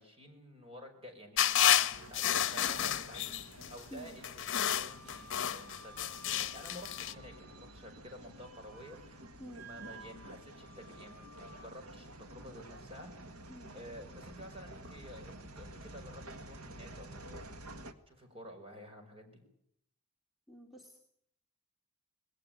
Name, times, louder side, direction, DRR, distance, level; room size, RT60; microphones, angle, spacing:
voice 1, 0.0-9.2 9.5-13.1 13.7-17.5 18.1-19.4, equal, 25° right, 4 dB, 5.5 m, -51 dB
sound 1, 1.4-3.7 4.2-7.1, left 11 dB, 60° left, 1.0 m, -30 dB
sound 2, 1.9-17.9, right 1 dB, 75° right, 1.8 m, -51 dB
Wind instrument woodwind instrument, 4.9-7.9 8.3-9.0 9.5-11.7, right 2 dB, 50° right, 2.3 m, -56 dB
voice 2, 20.5-21.0, equal, ahead, 0 dB, 2.6 m, -49 dB
20.5 x 18.0 x 9.4 m, 0.72 s
head